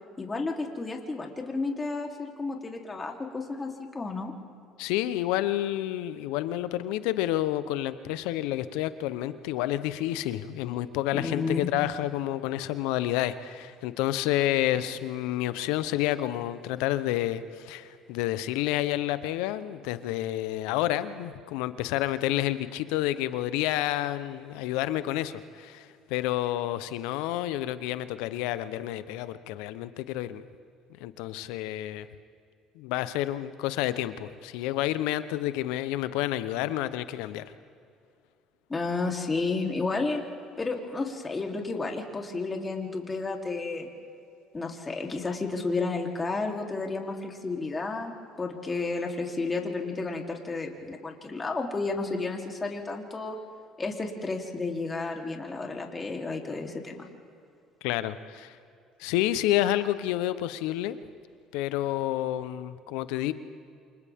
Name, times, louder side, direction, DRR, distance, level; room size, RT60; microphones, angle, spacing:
voice 1, 0.2-4.3 11.1-11.7 38.7-40.2 40.6-43.9 44.5-53.4 53.8-57.1, left 3 dB, 25° left, 1 dB, 3.4 m, -32 dB
voice 2, 4.8-30.4 31.0-32.1 32.8-37.4 57.8-58.6 59.0-61.0 61.5-63.3, left 14 dB, 80° left, 13 dB, 0.9 m, -29 dB
28.5 x 26.5 x 3.7 m, 2.4 s
supercardioid pair, 70°, 0 cm